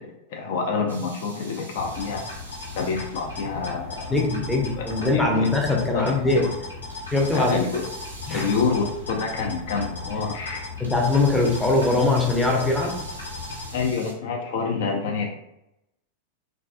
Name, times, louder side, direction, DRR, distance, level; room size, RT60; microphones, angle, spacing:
voice 1, 0.0-2.2 2.8-4.2 4.8-5.5 5.9-6.5 7.3-7.8 8.3-10.6 13.7-15.3, left 5 dB, 55° left, 1 dB, 0.4 m, -27 dB
sound 1, 0.9-3.7 6.9-9.3 10.8-14.1, right 2 dB, 75° right, 0.6 m, -45 dB
sound 2, 1.8-13.8, left 3 dB, 80° left, 1.0 m, -36 dB
voice 2, 4.1-6.4 7.1-7.7 8.3-8.5 10.8-13.0, left 2 dB, 5° left, -1 dB, 0.5 m, -22 dB
2.3 x 2.2 x 2.4 m, 0.84 s
figure-of-eight pair, 90°, 0 cm